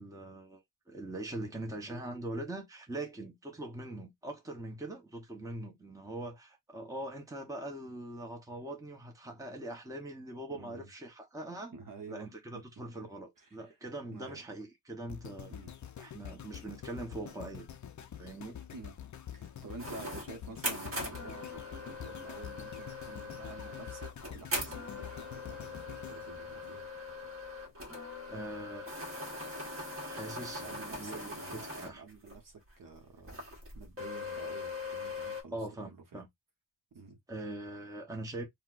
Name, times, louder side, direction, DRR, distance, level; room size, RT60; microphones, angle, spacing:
voice 1, 0.0-11.7 12.1-15.5 16.0-17.7 18.2-18.6 27.9-29.0 30.0-32.0 35.5-36.3 37.3-38.5, right 1 dB, 5° right, 0.8 m, -42 dB
voice 2, 10.5-10.9 11.7-12.6 13.0-13.1 13.4-13.8 14.1-14.4 15.5-15.7 18.7-18.9 19.3-26.9 30.6-33.4 33.7-35.6 35.8-36.2 36.9-37.2, right 4 dB, 45° right, 0.8 m, -49 dB
sound 1, 15.1-27.3 27.8-27.9, left 9 dB, 40° left, 0.4 m, -47 dB
sound 2, 19.8-32.3 32.7-32.8 33.3-35.4, left 1 dB, 30° right, 1.2 m, -41 dB
4.1 x 2.1 x 2.4 m
wide cardioid pair, 135°, 46 cm